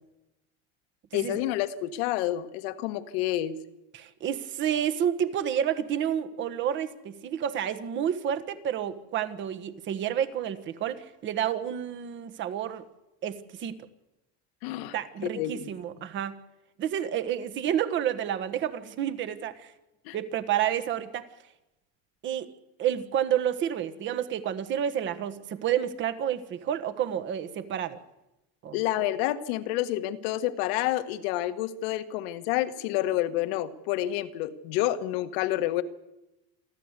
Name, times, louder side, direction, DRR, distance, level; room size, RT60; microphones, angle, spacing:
voice 1, 1.1-3.6 14.6-14.9 15.2-15.7 20.0-20.2 28.7-35.8, left 14 dB, 70° left, 12 dB, 1.5 m, -29 dB
voice 2, 3.9-12.8 13.2-13.8 14.9-16.4 16.8-19.7 20.1-21.3 22.2-22.5 22.8-28.0 28.6-28.8, right 9 dB, 35° right, 12 dB, 1.5 m, -30 dB
27.5 x 12.0 x 8.3 m, 0.95 s
cardioid pair, 155°, 31 cm